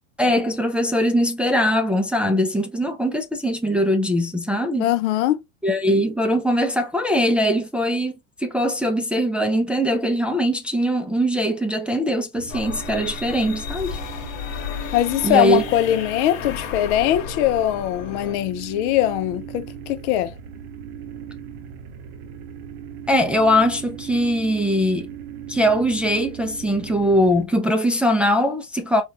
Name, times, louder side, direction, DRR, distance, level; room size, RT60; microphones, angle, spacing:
voice 1, 0.2-4.9 5.6-8.1 8.4-14.0 15.2-15.6 23.1-25.1 25.5-29.0, equal, 5° right, 0.4 m, -21 dB
voice 2, 4.8-5.4 14.9-20.3, left 12 dB, 60° left, 0.6 m, -21 dB
sound 1, 12.3-27.5, right 8 dB, 60° right, 0.8 m, -38 dB
sound 2, 12.5-18.4, left 7 dB, 80° left, 1.1 m, -33 dB
3.6 x 2.3 x 2.7 m
hypercardioid pair, 100°, 39 cm